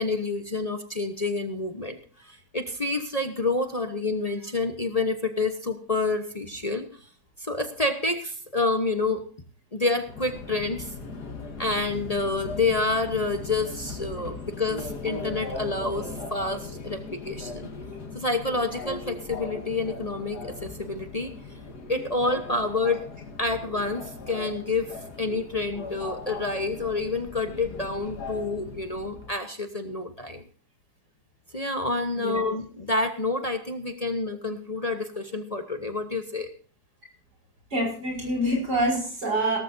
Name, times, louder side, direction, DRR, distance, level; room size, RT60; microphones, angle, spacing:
voice 1, 0.0-6.9 7.4-9.2 9.7-10.9 11.6-17.7 18.1-21.3 21.9-23.0 23.4-30.4 31.5-36.5, left 3 dB, 25° left, 7 dB, 1.0 m, -28 dB
Subway metro underground, 10.1-29.3, left 3 dB, 75° left, 2.6 m, -39 dB
voice 2, 37.7-39.6, right 1 dB, 85° right, 1 dB, 6.9 m, -26 dB
17.5 x 14.0 x 2.7 m, 0.41 s
omnidirectional pair, 1.7 m